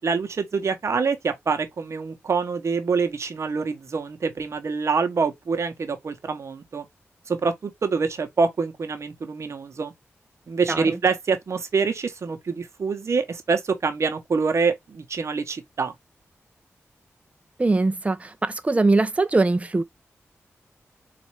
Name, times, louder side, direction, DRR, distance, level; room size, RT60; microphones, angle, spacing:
voice 1, 0.0-6.9 7.3-9.9 10.5-15.9, right 5 dB, 65° right, 0.9 m, -25 dB
voice 2, 17.6-19.8, right 3 dB, 25° right, 0.5 m, -22 dB
4.1 x 2.5 x 3.1 m
cardioid pair, 55°, 5 cm